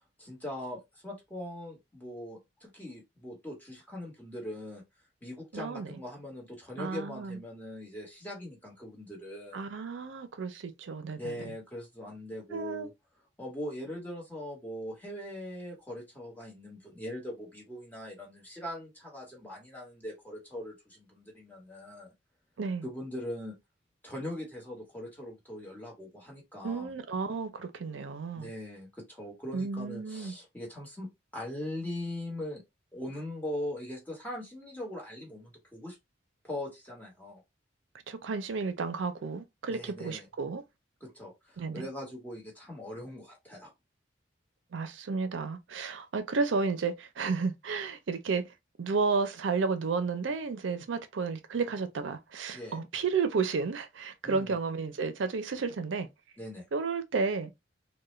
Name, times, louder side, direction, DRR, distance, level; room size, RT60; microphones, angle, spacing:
voice 1, 0.2-4.8 5.2-9.6 11.2-12.9 13.4-22.1 22.8-23.6 24.0-26.9 28.3-32.6 32.9-36.0 36.4-37.4 39.7-40.3 41.0-43.7 52.5-52.8 54.2-54.6 56.4-56.7, left 1 dB, 10° left, 1.2 m, -41 dB
voice 2, 5.5-5.9 6.8-7.4 9.5-11.5 12.5-12.9 22.6-22.8 26.6-28.5 29.5-30.3 38.1-40.6 41.6-41.8 44.7-48.4 48.8-56.1 56.7-57.5, right 4 dB, 85° right, 0.5 m, -32 dB
2.3 x 2.1 x 3.0 m
head